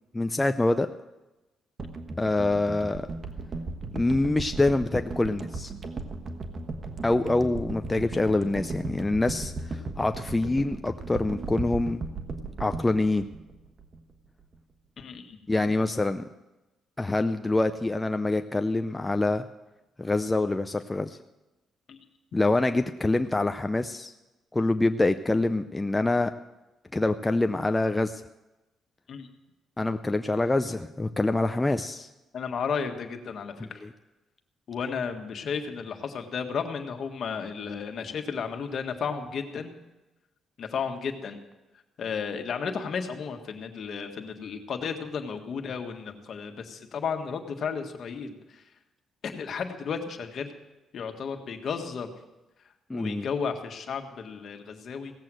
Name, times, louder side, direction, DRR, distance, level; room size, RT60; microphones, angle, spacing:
voice 1, 0.1-0.9 2.2-3.1 3.9-5.7 7.0-12.0 12.6-13.3 15.5-16.2 17.0-19.5 20.0-21.2 22.3-24.1 24.5-26.3 26.9-28.2 29.8-32.1 33.6-33.7 52.9-53.3, left 2 dB, 15° left, 8 dB, 0.5 m, -25 dB
sound 1, 1.8-14.1 14.4-14.6, right 3 dB, 40° right, 1.2 m, -36 dB
voice 2, 15.0-15.4 21.9-22.0 29.1-29.3 32.3-33.8 34.7-39.7 40.6-41.4 42.0-48.6 49.2-50.5 50.9-52.1 52.9-55.1, left 6 dB, 60° left, 5 dB, 1.7 m, -33 dB
17.0 x 7.7 x 7.7 m, 1.0 s
cardioid pair, 90°, 0 cm